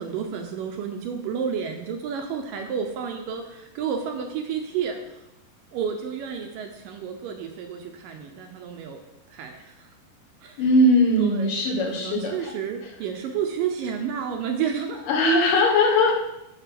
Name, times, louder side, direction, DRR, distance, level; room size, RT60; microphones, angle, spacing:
voice 1, 0.0-5.2 5.7-9.0 9.3-9.8 10.4-10.6 11.2-11.5 11.9-15.0, right 7 dB, 75° right, 4 dB, 2.3 m, -31 dB
voice 2, 10.6-12.5 15.1-16.1, left 1 dB, 65° left, 0 dB, 2.8 m, -20 dB
10.5 x 6.5 x 6.0 m, 0.89 s
omnidirectional pair, 4.5 m